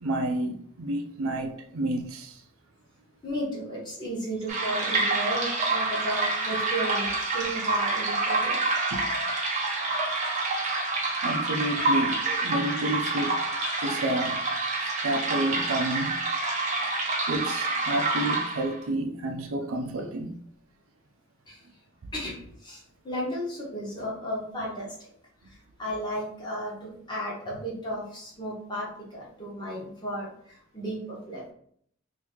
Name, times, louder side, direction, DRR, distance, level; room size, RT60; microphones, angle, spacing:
voice 1, 0.0-2.4 8.9-9.1 11.2-13.4 13.8-14.4 14.8-16.2 17.3-20.4, right 1 dB, 85° right, 0.5 m, -30 dB
voice 2, 3.2-8.5 21.5-21.6 22.1-25.1 25.4-31.4, equal, 20° left, 1.2 m, -34 dB
sound 1, 4.5-18.8, right 3 dB, 35° right, 0.7 m, -27 dB
2.9 x 2.7 x 3.6 m
head